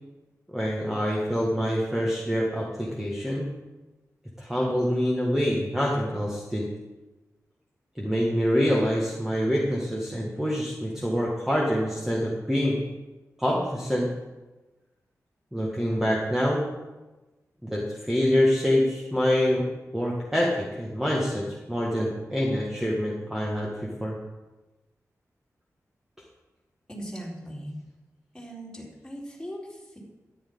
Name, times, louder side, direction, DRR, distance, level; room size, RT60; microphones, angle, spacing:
voice 1, 0.5-3.5 4.4-6.7 8.0-12.8 13.4-14.1 15.5-16.7 17.6-24.2, equal, 5° right, -4 dB, 2.0 m, -26 dB
voice 2, 26.9-27.7 28.3-30.0, equal, 10° left, -5 dB, 4.1 m, -39 dB
13.5 x 11.0 x 4.0 m, 1.1 s
wide cardioid pair, 95°, 6 cm